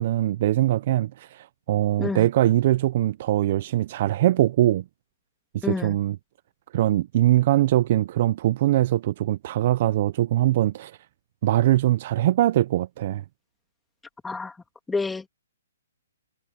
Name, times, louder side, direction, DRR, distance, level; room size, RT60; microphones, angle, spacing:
voice 1, 0.0-4.8 5.5-6.2 6.7-10.9 11.4-13.2, right 14 dB, 40° right, 0.5 m, -22 dB
voice 2, 5.6-6.0 14.2-14.5 14.9-15.3, left 4 dB, 5° left, 2.1 m, -28 dB
hypercardioid pair, 165°, 0 cm